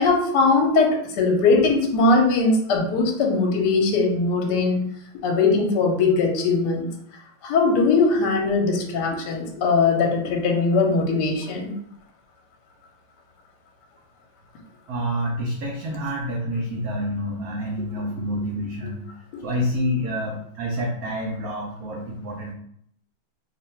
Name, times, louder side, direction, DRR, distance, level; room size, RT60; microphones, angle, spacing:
voice 1, 0.0-4.8 5.2-6.9 7.4-11.7 19.3-19.5, left 3 dB, 65° left, 1 dB, 1.2 m, -20 dB
voice 2, 14.9-19.1 19.4-22.5, equal, 85° right, -1 dB, 0.8 m, -28 dB
2.9 x 2.5 x 4.3 m, 0.69 s
omnidirectional pair, 2.2 m